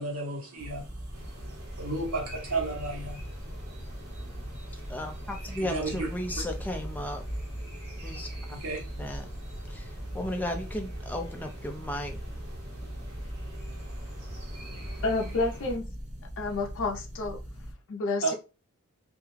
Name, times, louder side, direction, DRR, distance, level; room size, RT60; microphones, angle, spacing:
voice 1, 0.0-4.9 5.6-6.1 8.5-8.8 13.8-15.0 18.2-18.3, right 3 dB, 75° right, 1.0 m, -35 dB
sound 1, 0.6-17.7, equal, 30° right, 0.7 m, -40 dB
sound 2, 1.1-15.8, equal, 45° right, 1.1 m, -45 dB
voice 2, 4.7-7.2 8.0-8.3 9.0-9.3 9.7-12.2, left 1 dB, 10° left, 0.4 m, -35 dB
voice 3, 15.0-15.8 16.4-17.4 17.9-18.3, left 3 dB, 60° left, 0.6 m, -29 dB
2.4 x 2.2 x 3.1 m
head